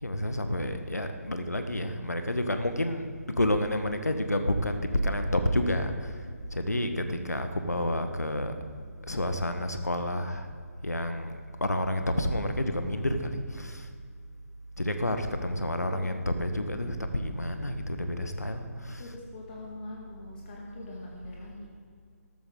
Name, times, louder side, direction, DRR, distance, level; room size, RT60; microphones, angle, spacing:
voice 1, 0.0-3.1 3.4-6.1 6.5-8.5 9.1-10.5 10.8-13.8 14.8-19.1, left 1 dB, 80° left, 7 dB, 1.4 m, -29 dB
voice 2, 15.3-16.2 18.9-21.7, left 2 dB, 35° left, -2 dB, 2.0 m, -44 dB
14.0 x 12.5 x 3.9 m, 2.1 s
figure-of-eight pair, 140°, 9 cm